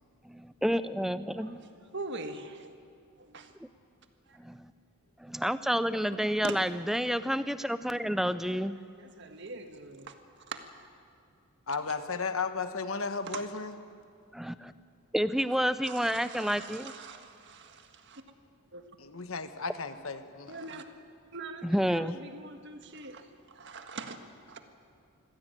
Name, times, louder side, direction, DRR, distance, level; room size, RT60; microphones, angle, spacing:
voice 1, 0.2-1.6 4.4-4.7 5.2-8.8 14.3-14.7 15.1-16.9 21.6-22.2, equal, ahead, 13 dB, 0.5 m, -29 dB
voice 2, 1.3-1.7 1.9-2.7 3.2-3.5 4.3-4.4 6.4-6.6 8.9-10.6 13.3-13.4 15.9-18.2 18.7-18.8 20.5-20.8 21.3-24.2 24.5-24.6, right 3 dB, 50° right, 7 dB, 1.7 m, -43 dB
voice 3, 11.7-13.7 19.0-20.7, left 4 dB, 65° left, 10 dB, 1.3 m, -34 dB
24.5 x 16.0 x 9.0 m, 2.4 s
head